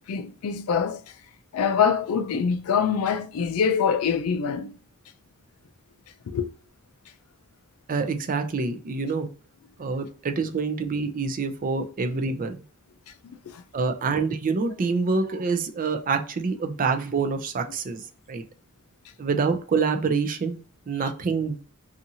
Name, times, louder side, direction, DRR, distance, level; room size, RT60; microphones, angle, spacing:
voice 1, 0.1-1.1 1.5-4.7 6.3-6.5 13.5-13.6, left 6 dB, 70° left, 0.4 m, -24 dB
voice 2, 7.9-9.3 9.8-12.5 13.7-18.4 19.2-20.6 20.9-21.7, right 4 dB, 40° right, 0.4 m, -26 dB
2.7 x 2.4 x 2.7 m
head